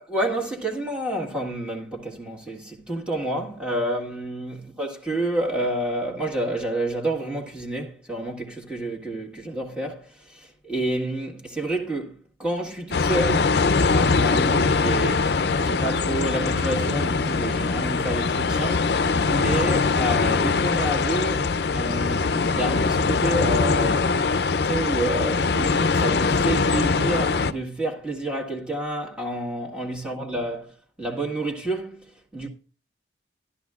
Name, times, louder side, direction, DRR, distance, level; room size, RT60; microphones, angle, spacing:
voice 1, 0.0-13.6 13.9-15.3 15.6-24.3 24.6-30.7 31.0-32.5, right 1 dB, 5° right, 1.6 m, -29 dB
sound 1, 12.9-27.5, left 4 dB, 65° left, 0.5 m, -22 dB
13.0 x 12.0 x 2.4 m
head